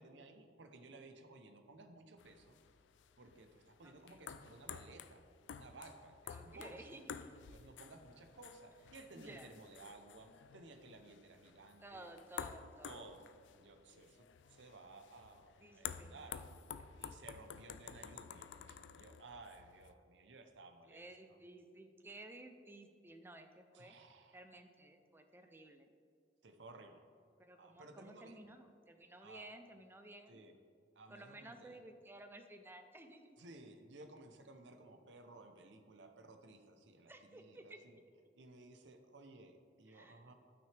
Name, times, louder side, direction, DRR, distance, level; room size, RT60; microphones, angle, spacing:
voice 1, 0.0-2.6 3.2-5.2 5.5-7.0 7.5-12.1 12.8-13.3 13.6-16.4 17.0-21.0 23.7-24.4 26.4-27.1 27.6-28.4 29.2-29.5 30.3-30.5 31.0-31.8 33.4-38.0 38.3-40.3, right 2 dB, 75° right, 6 dB, 0.8 m, -57 dB
sound 1, 2.2-19.9, left 7 dB, 75° left, 0.4 m, -52 dB
voice 2, 3.8-4.2 6.3-7.4 9.1-9.5 11.8-13.1 15.6-16.5 16.8-16.9 20.9-24.0 24.3-25.9 27.4-30.5 31.1-33.4 37.1-37.8 39.9-40.2, right 1 dB, 10° right, 6 dB, 0.5 m, -55 dB
12.5 x 6.1 x 3.4 m, 2.2 s
head